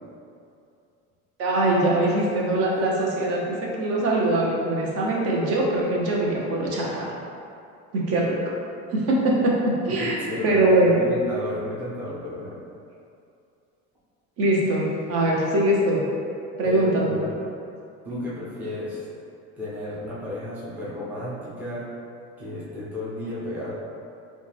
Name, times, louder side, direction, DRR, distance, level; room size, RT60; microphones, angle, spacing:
voice 1, 1.4-7.1 7.9-8.4 8.9-11.0 14.4-16.0 16.6-17.2, right 1 dB, 50° right, -3 dB, 0.8 m, -22 dB
voice 2, 10.0-12.6 16.6-17.4 18.0-19.0 19.6-21.9 22.4-23.7, left 1 dB, 5° right, -9 dB, 0.5 m, -33 dB
5.3 x 2.3 x 3.4 m, 2.6 s
cardioid pair, 170°, 31 cm